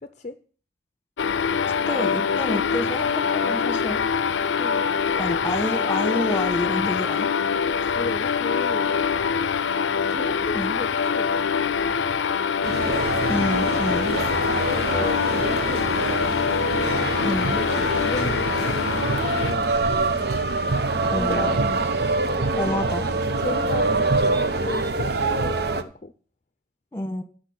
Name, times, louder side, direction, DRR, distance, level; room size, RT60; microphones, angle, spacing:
voice 1, 0.0-0.4 4.6-4.9 7.9-8.9 10.1-11.4 13.3-16.2 17.9-20.2 21.1-21.6 22.3-22.9 23.4-26.1, left 3 dB, 40° left, 10 dB, 0.6 m, -35 dB
sound 1, 1.2-19.6, left 6 dB, 80° left, 0.5 m, -24 dB
voice 2, 1.9-4.0 5.2-7.3 10.5-10.8 13.3-14.1 17.2-17.7 20.2-20.3 21.1-21.8 22.5-23.0 26.9-27.2, left 1 dB, 15° left, 8 dB, 1.4 m, -28 dB
sound 2, 12.6-25.8, right 3 dB, 60° right, 1.0 m, -25 dB
10.5 x 6.5 x 8.1 m, 0.40 s
head